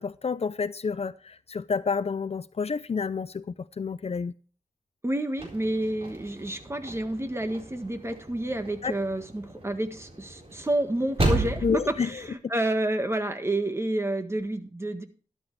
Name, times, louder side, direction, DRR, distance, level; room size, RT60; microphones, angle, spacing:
voice 1, 0.0-3.4 3.8-4.3 8.8-8.9 11.6-12.1, left 5 dB, 50° left, 0.5 m, -29 dB
voice 2, 5.0-15.0, right 1 dB, 20° right, 1.6 m, -29 dB
sound 1, 5.4-12.3, right 2 dB, 45° right, 4.0 m, -34 dB
13.0 x 11.5 x 3.3 m
wide cardioid pair, 105°, 13 cm